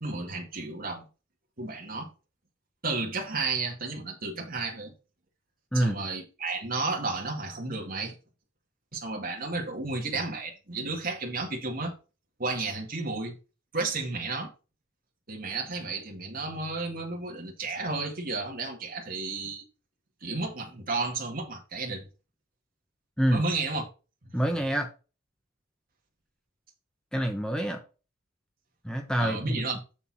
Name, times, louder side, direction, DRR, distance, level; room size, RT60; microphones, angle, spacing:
voice 1, 0.0-1.1 1.6-2.1 2.8-4.9 5.7-8.2 8.9-11.9 12.4-13.3 13.7-14.5 15.3-19.7 20.2-22.1 23.3-23.8 29.2-29.8, right 3 dB, 45° right, 2.1 m, -32 dB
voice 2, 24.3-24.9 27.1-27.8 28.8-29.6, right 1 dB, 5° left, 1.0 m, -26 dB
7.1 x 6.9 x 4.2 m
head